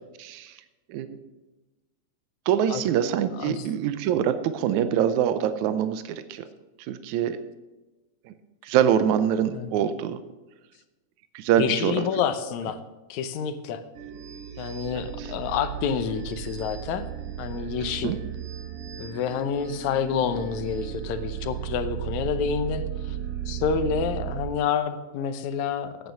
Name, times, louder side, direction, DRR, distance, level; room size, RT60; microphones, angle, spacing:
voice 1, 0.2-0.6 0.9-1.1 2.5-6.4 6.8-7.4 8.3-8.4 8.6-10.2 11.3-12.0 15.2-15.3 18.0-18.2, right 9 dB, 85° right, 11 dB, 2.1 m, -24 dB
voice 2, 11.6-12.8 13.1-13.8 14.6-17.1 17.4-18.2 19.0-23.2 23.5-26.1, left 7 dB, 80° left, 11 dB, 2.2 m, -28 dB
sound 1, 13.9-24.5, right 11 dB, 60° right, 1.7 m, -35 dB
9.1 x 8.8 x 7.5 m, 1.1 s
omnidirectional pair, 3.4 m